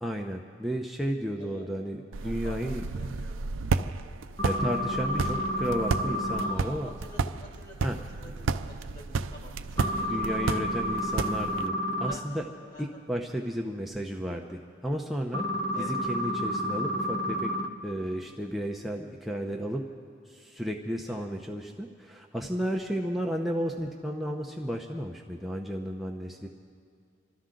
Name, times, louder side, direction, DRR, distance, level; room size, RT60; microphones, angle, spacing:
voice 1, 0.0-2.8 4.4-6.9 7.8-8.0 10.1-12.5 12.8-15.5 15.8-17.5 17.8-19.8 20.3-26.5, equal, ahead, 0 dB, 0.7 m, -33 dB
voice 2, 1.3-1.7 2.2-3.4 6.4-8.5 8.8-10.4 12.1-12.4 12.7-13.0 15.7-15.9 21.1-21.3, left 1 dB, 40° left, -4 dB, 3.2 m, -48 dB
sound 1, 2.1-11.7, right 4 dB, 90° right, 0.5 m, -32 dB
sound 2, 4.4-6.5 9.8-12.1 15.3-17.7, equal, 20° left, 1.1 m, -30 dB
27.5 x 13.0 x 3.8 m, 2.2 s
head